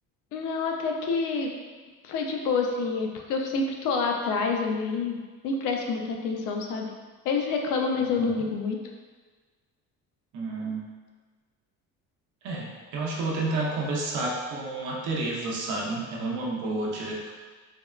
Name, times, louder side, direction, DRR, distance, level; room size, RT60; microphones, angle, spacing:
voice 1, 0.3-1.5 2.0-5.2 5.4-6.9 7.2-8.8, left 4 dB, 75° left, 2 dB, 0.5 m, -27 dB
voice 2, 8.0-8.4 10.3-10.8 12.4-17.3, right 2 dB, 70° right, -3 dB, 0.7 m, -30 dB
3.4 x 2.1 x 2.3 m, 1.4 s
cardioid pair, 180°, 32 cm